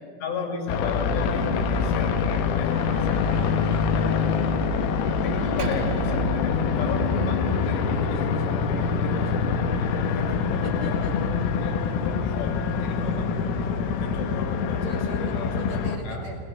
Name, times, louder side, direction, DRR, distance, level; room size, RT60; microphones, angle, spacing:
voice 1, 0.2-3.5 3.9-4.2 5.2-11.3 11.6-11.7 12.0-13.5 14.0-15.5 16.0-16.3, left 4 dB, 60° left, 3 dB, 4.7 m, -35 dB
sound 1, 0.7-16.0, left 5 dB, 80° left, 3.9 m, -25 dB
voice 2, 2.7-3.9 10.6-11.3 14.7-16.5, right 2 dB, 45° right, 1 dB, 2.3 m, -40 dB
Percussion, 5.6-10.4, right 9 dB, 85° right, 2.0 m, -37 dB
29.5 x 19.5 x 6.5 m, 2.6 s
omnidirectional pair, 5.9 m